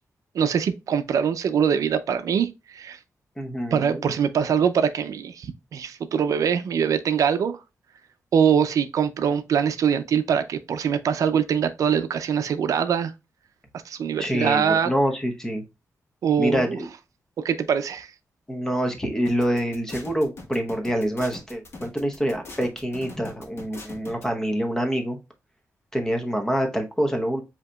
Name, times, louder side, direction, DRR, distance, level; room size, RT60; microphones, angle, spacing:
voice 1, 0.3-3.0 3.7-7.6 8.3-13.1 13.9-14.9 16.2-16.8 17.4-18.1, right 7 dB, 80° right, 0.5 m, -23 dB
voice 2, 3.4-4.1 14.2-15.6 16.4-16.9 18.5-25.2 25.9-27.4, equal, 10° left, 0.8 m, -26 dB
sound 1, 19.2-24.2, left 3 dB, 50° left, 1.2 m, -41 dB
7.8 x 2.8 x 2.2 m
wide cardioid pair, 165°, 6 cm